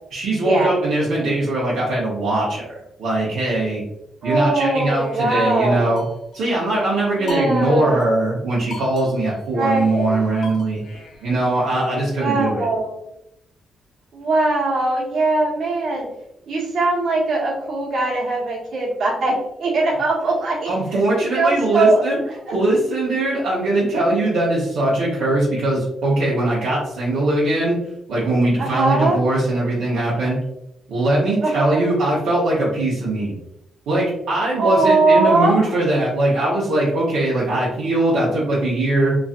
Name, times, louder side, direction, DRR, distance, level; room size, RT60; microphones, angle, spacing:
voice 1, 0.1-2.7 3.0-3.8 4.2-6.0 6.3-12.6 20.7-22.2 22.5-27.8 28.1-30.4 30.9-33.3 33.9-39.1, right 2 dB, 90° right, -7 dB, 0.8 m, -21 dB
voice 2, 4.2-5.9 7.2-8.1 9.5-10.1 12.2-12.9 14.1-16.1 16.5-19.3 19.6-20.7 21.3-22.0 22.3-22.5 28.6-29.2 31.4-31.9 34.6-35.6, right 2 dB, 70° right, -5 dB, 1.2 m, -20 dB
sound 1, 4.9-6.5 7.3-8.1 8.4-8.5 8.7-12.1, left 4 dB, 70° left, 0.7 m, -41 dB
3.1 x 2.6 x 2.4 m, 0.82 s
cardioid pair, 80°, 0 cm